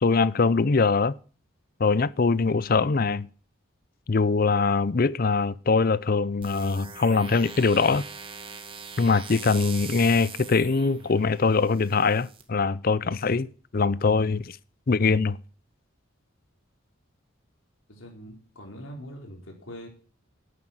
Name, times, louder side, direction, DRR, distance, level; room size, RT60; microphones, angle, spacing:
voice 1, 0.0-1.1 1.8-3.3 4.1-8.0 9.0-13.5 13.7-14.6 14.9-15.4, left 4 dB, 45° left, 0.5 m, -22 dB
sound 1, 6.4-12.4, right 5 dB, 25° right, 1.9 m, -42 dB
voice 2, 17.9-19.9, equal, 75° left, 4.1 m, -42 dB
11.0 x 9.5 x 7.6 m
head